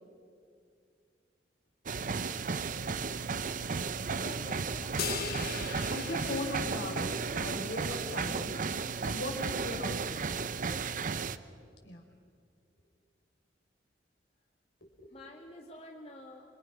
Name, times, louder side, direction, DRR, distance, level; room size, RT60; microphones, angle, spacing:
sound 1, 1.9-11.4, right 5 dB, 45° right, 0.6 m, -34 dB
voice 1, 4.2-4.9 10.7-11.0 11.3-11.4 15.1-16.4, left 1 dB, 35° left, 0 dB, 2.1 m, -49 dB
sound 2, 5.0-7.5, left 7 dB, 55° left, 1.0 m, -39 dB
voice 2, 5.9-8.6 9.0-10.2 11.8-12.0 14.8-15.2, left 1 dB, 80° left, 1 dB, 4.9 m, -38 dB
27.0 x 23.5 x 6.1 m, 2.2 s
head